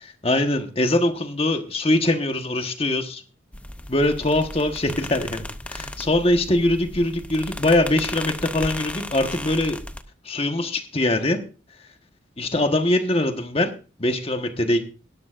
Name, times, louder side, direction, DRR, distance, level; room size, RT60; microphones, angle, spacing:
voice 1, 0.2-3.2 3.9-5.4 5.7-9.8 10.2-11.4 12.4-13.7 14.0-14.8, left 1 dB, 30° left, 7 dB, 1.2 m, -22 dB
sound 1, 3.5-10.0, left 1 dB, 5° left, 0.6 m, -35 dB
18.0 x 12.0 x 2.5 m, 0.34 s
head